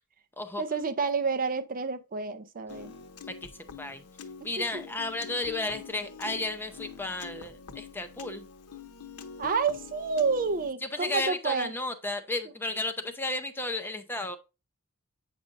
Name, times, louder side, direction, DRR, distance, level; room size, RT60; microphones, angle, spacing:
voice 1, 0.6-2.9 4.7-4.8 9.4-11.7, right 5 dB, 40° right, 0.6 m, -29 dB
Piano, 2.7-10.7, left 6 dB, 85° left, 0.7 m, -45 dB
voice 2, 4.4-8.4 10.9-14.4, left 2 dB, 10° left, 0.6 m, -33 dB
8.4 x 5.2 x 2.5 m
head